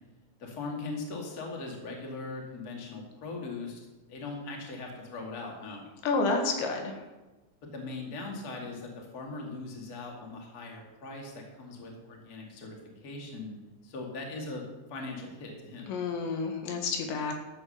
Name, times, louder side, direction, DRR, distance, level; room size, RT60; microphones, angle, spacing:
voice 1, 0.4-5.8 7.7-12.8 13.0-13.5 13.8-14.6 14.9-15.9 16.3-16.4, left 3 dB, 30° left, 0 dB, 2.0 m, -40 dB
voice 2, 6.0-7.0 15.9-17.3, left 4 dB, 90° left, 3 dB, 3.9 m, -29 dB
13.5 x 7.9 x 6.6 m, 1.1 s
omnidirectional pair, 4.9 m